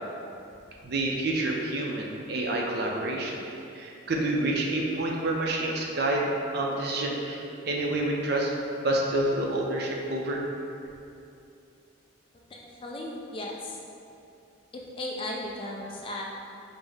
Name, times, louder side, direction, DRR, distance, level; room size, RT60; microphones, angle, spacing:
voice 1, 0.8-3.4 3.7-6.3 6.5-8.5 8.8-10.4, right 2 dB, 50° right, -1 dB, 0.5 m, -28 dB
voice 2, 12.5-13.8 14.7-16.3, left 1 dB, 25° left, -2 dB, 0.3 m, -36 dB
5.4 x 2.1 x 3.4 m, 2.7 s
head